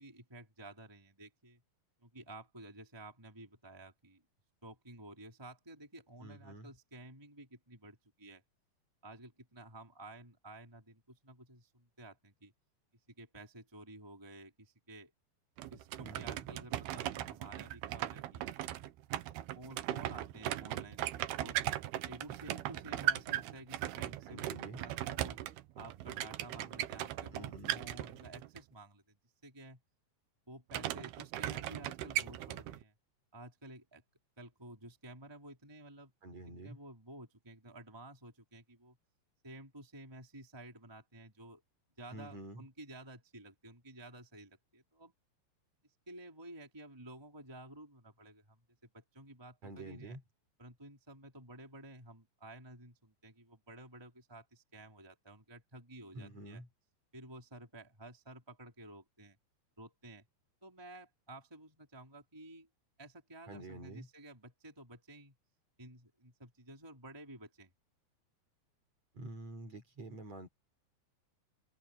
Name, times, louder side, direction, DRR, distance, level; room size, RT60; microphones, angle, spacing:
voice 1, 0.0-1.6 2.0-4.2 4.6-8.4 9.0-12.5 13.1-15.1 15.7-18.5 19.5-21.0 21.4-21.6 22.1-25.4 25.7-29.2 29.4-29.8 30.5-32.9 33.3-34.0 34.4-36.1 36.6-39.0 39.4-41.6 42.0-45.1 46.1-50.2 50.6-56.6 57.1-59.4 59.8-60.3 60.6-62.7 63.0-65.3 65.8-67.7, right 1 dB, 5° right, 3.5 m, -52 dB
voice 2, 6.2-6.7 16.0-16.5 24.3-24.8 27.3-27.9 36.2-36.8 42.1-42.6 49.6-50.2 56.1-56.7 63.5-64.1 69.1-70.5, right 2 dB, 35° right, 5.7 m, -48 dB
sound 1, 15.6-28.6 30.7-32.8, right 13 dB, 70° right, 2.6 m, -38 dB
open air
omnidirectional pair, 5.3 m